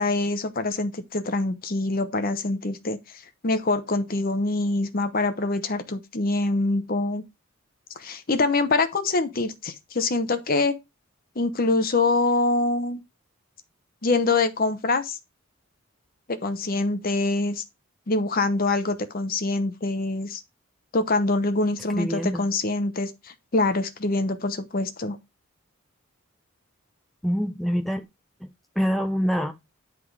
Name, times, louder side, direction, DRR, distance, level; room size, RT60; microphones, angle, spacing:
voice 1, 0.0-3.0 3.4-7.2 8.0-10.7 11.4-13.0 14.0-15.2 16.3-17.6 18.1-20.4 20.9-23.1 23.5-25.2, left 2 dB, 45° left, 0.9 m, -24 dB
voice 2, 21.9-22.4 27.2-28.0 28.4-28.5 28.8-29.5, equal, ahead, 0.6 m, -25 dB
10.0 x 3.7 x 4.7 m
head